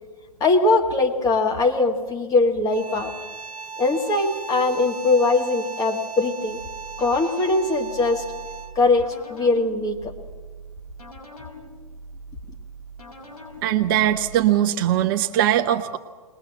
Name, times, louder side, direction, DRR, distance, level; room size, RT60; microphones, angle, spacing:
voice 1, 0.4-3.1 3.8-6.6 7.0-8.2 8.8-10.1, left 3 dB, 20° left, 2 dB, 2.0 m, -21 dB
sound 1, 2.7-8.9, right 4 dB, 20° right, 1.7 m, -37 dB
sound 2, 6.5-14.4, right 2 dB, 80° left, 4.8 m, -42 dB
voice 2, 13.6-16.0, right 11 dB, 35° right, 6 dB, 0.8 m, -20 dB
21.0 x 20.0 x 7.8 m, 1.4 s
figure-of-eight pair, 115°, 19 cm